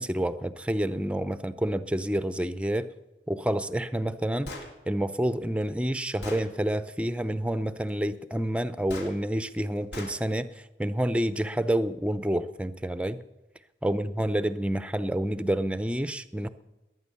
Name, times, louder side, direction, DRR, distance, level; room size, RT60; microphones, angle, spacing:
voice 1, 0.0-2.9 3.3-4.5 4.9-10.5 10.8-13.2 13.8-16.5, right 1 dB, 5° right, 13 dB, 0.6 m, -28 dB
Gunshot gunfire, 4.4-4.7 5.6-5.7 6.2-6.5 8.9-9.1 9.9-10.2, left 1 dB, 70° left, 3.0 m, -38 dB
20.5 x 9.4 x 7.0 m, 1.0 s
head